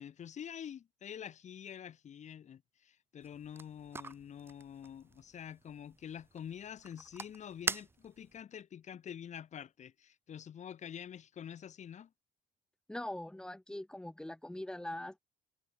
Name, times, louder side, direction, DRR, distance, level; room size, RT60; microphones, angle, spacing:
voice 1, 0.0-12.1, left 9 dB, 45° left, 1.4 m, -47 dB
sound 1, 3.2-8.4, right 4 dB, 15° right, 0.3 m, -44 dB
voice 2, 12.9-15.2, left 1 dB, 5° left, 1.4 m, -42 dB
cardioid pair, 110°, 17 cm